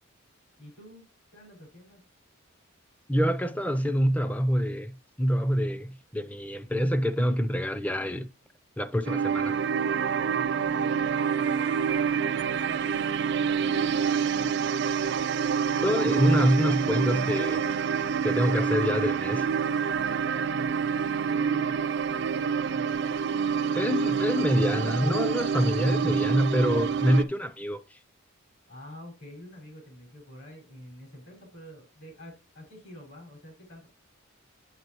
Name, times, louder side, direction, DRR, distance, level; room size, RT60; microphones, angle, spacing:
voice 1, 0.6-2.0 10.2-14.9 15.7-16.1 20.2-22.3 22.6-23.2 23.8-24.6 28.7-33.9, left 1 dB, 60° left, 5.5 m, -48 dB
voice 2, 3.1-8.3 8.8-9.6 15.8-17.6 18.2-19.5 23.7-27.8, equal, 5° left, 0.5 m, -26 dB
sound 1, 9.0-27.2, right 7 dB, 50° right, 0.3 m, -27 dB
8.1 x 8.1 x 3.0 m
head